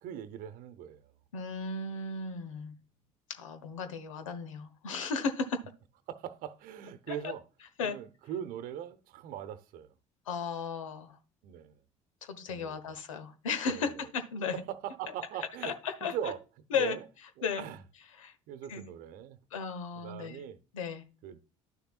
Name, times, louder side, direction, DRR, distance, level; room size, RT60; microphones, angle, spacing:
voice 1, 0.0-1.1 6.1-7.4 7.8-9.9 11.4-11.8 12.5-12.9 13.7-13.9 14.5-15.7 16.0-16.4 16.7-17.0 17.4-17.8 18.5-19.4 20.0-20.6 21.2-21.4, right 10 dB, 60° right, 0.9 m, -40 dB
voice 2, 1.3-2.7 3.3-5.6 7.1-7.2 7.8-8.0 10.3-11.2 12.2-14.6 15.6-16.1 16.7-17.0 17.4-17.6 18.2-18.3 18.7-18.8 19.5-20.4 20.7-21.0, left 5 dB, 80° left, 1.1 m, -35 dB
11.0 x 6.9 x 2.4 m
hypercardioid pair, 60°, 16 cm